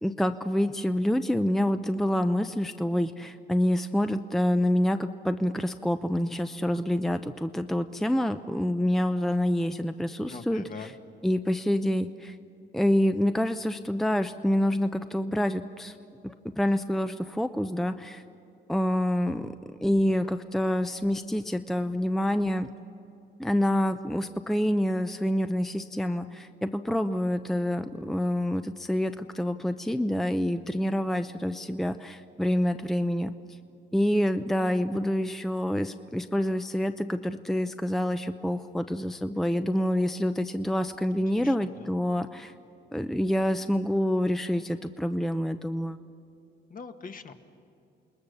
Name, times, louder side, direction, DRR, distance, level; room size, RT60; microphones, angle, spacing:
voice 1, 0.0-10.9 11.2-12.4 12.7-16.0 16.2-18.2 18.7-22.7 23.4-33.3 33.9-42.5 42.9-46.0, left 1 dB, ahead, 9 dB, 0.6 m, -27 dB
voice 2, 10.3-10.9 41.4-41.5 46.7-47.3, left 5 dB, 45° left, 7 dB, 1.5 m, -42 dB
28.0 x 20.0 x 6.8 m, 2.6 s
cardioid pair, 90°, 20 cm